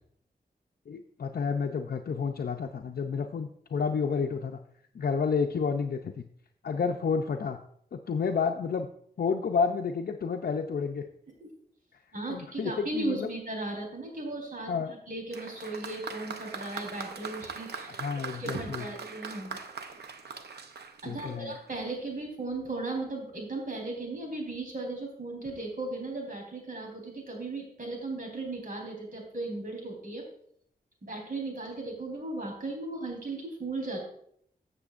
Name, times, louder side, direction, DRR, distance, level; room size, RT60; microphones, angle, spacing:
voice 1, 0.9-4.6 4.9-6.2 6.6-7.6 7.9-8.9 9.2-11.1 12.3-13.3 14.7-14.9 17.9-18.8 21.0-21.6, left 5 dB, 65° left, 4 dB, 0.6 m, -30 dB
voice 2, 12.1-14.7 15.1-17.9 18.2-19.6 21.0-30.2 31.0-34.0, right 2 dB, 55° right, 0 dB, 4.0 m, -36 dB
Applause, 15.3-21.8, right 5 dB, 85° right, 0.8 m, -41 dB
15.5 x 6.8 x 2.5 m, 0.68 s
wide cardioid pair, 75°, 17 cm